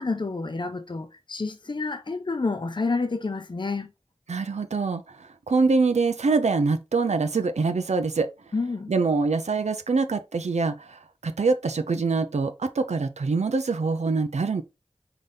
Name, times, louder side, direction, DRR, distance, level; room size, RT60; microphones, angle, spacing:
voice 1, 0.0-3.9 8.5-8.9, left 3 dB, 45° left, 0.6 m, -29 dB
voice 2, 4.3-5.0 5.5-8.3 8.9-14.6, right 4 dB, 85° right, 0.5 m, -24 dB
4.1 x 3.8 x 3.4 m
wide cardioid pair, 55°, 11 cm